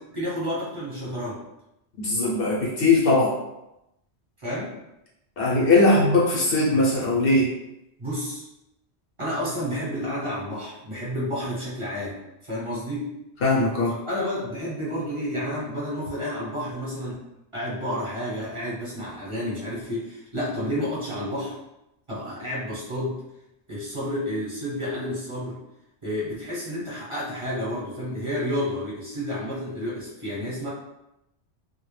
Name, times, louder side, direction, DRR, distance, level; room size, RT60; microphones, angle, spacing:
voice 1, 0.1-1.4 4.4-4.7 8.0-8.5 9.2-12.2 12.4-13.1 14.0-17.2 17.5-21.6 22.1-23.2 23.7-25.6 26.0-30.7, equal, 30° right, -9 dB, 0.8 m, -30 dB
voice 2, 2.0-3.4 5.4-7.5 13.4-13.9, left 2 dB, 65° left, -4 dB, 0.7 m, -20 dB
2.2 x 2.0 x 3.1 m, 0.89 s
omnidirectional pair, 1.1 m